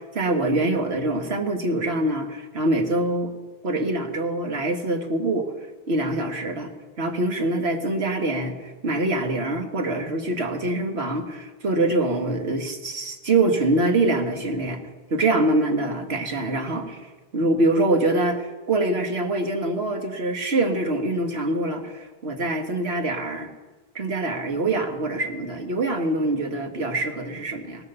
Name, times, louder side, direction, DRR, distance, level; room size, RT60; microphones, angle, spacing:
voice 1, 0.0-3.3 3.6-5.5 5.9-6.7 7.0-14.8 15.1-23.5 24.0-27.8, right 2 dB, 85° right, 4 dB, 1.9 m, -24 dB
18.0 x 14.0 x 5.5 m, 1.3 s
omnidirectional pair, 1.1 m